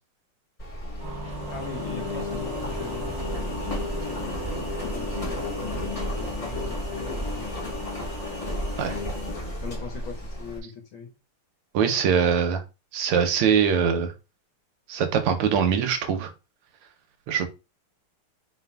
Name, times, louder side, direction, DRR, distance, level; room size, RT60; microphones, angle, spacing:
Engine, 0.6-10.6, left 1 dB, 25° left, 0.8 m, -32 dB
sound 1, 1.0-9.0, right 3 dB, 45° right, 0.9 m, -40 dB
voice 1, 1.2-7.8 9.6-11.1, left 5 dB, 75° left, 1.7 m, -41 dB
voice 2, 11.7-12.6 12.9-14.1 14.9-16.3 17.3-17.5, right 7 dB, 85° right, 1.6 m, -22 dB
4.1 x 3.8 x 2.2 m
omnidirectional pair, 2.4 m